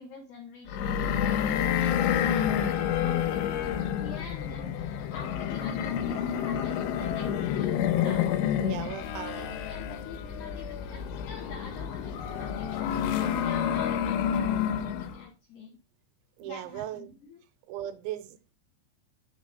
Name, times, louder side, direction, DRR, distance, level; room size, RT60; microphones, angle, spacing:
voice 1, 0.0-3.7 4.0-8.3 8.8-8.9 9.2-15.8 16.4-17.4, left 4 dB, 65° left, 2.1 m, -46 dB
sound 1, 0.7-15.2, left 9 dB, 90° left, 3.0 m, -29 dB
voice 2, 8.6-9.6 16.4-17.1 17.7-18.5, right 12 dB, 90° right, 3.1 m, -38 dB
6.3 x 4.0 x 5.2 m
omnidirectional pair, 5.3 m